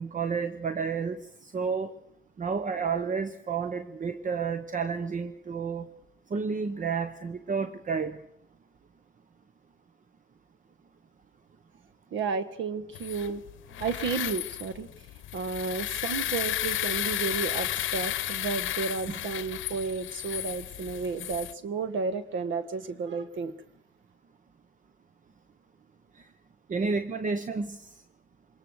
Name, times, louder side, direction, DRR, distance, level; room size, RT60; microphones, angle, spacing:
voice 1, 0.0-1.9 2.4-5.9 6.3-8.2 19.1-19.2 26.7-27.9, right 5 dB, 40° right, 11 dB, 1.1 m, -31 dB
voice 2, 12.1-13.4 13.8-14.9 15.3-23.5, right 5 dB, 75° right, 12 dB, 1.7 m, -32 dB
sound 1, 12.9-21.5, left 14 dB, 80° left, 0.8 m, -33 dB
23.5 x 20.5 x 6.4 m, 0.77 s
cardioid pair, 90°, 20 cm